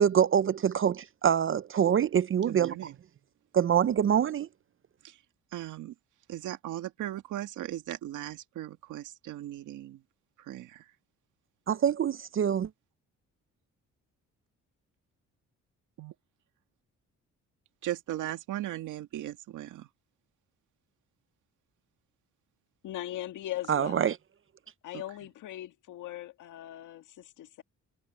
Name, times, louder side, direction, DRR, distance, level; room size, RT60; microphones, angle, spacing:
voice 1, 0.0-2.7 3.5-4.5 11.7-12.7 23.7-24.2, right 9 dB, 45° right, 0.6 m, -25 dB
voice 2, 2.5-2.9 5.0-5.2 5.5-5.9 6.3-10.0 10.4-10.9 16.0-16.1 17.8-19.9, right 13 dB, 85° right, 2.2 m, -38 dB
voice 3, 22.8-24.0 24.8-27.6, left 14 dB, 85° left, 1.7 m, -39 dB
cardioid pair, 90°, 30 cm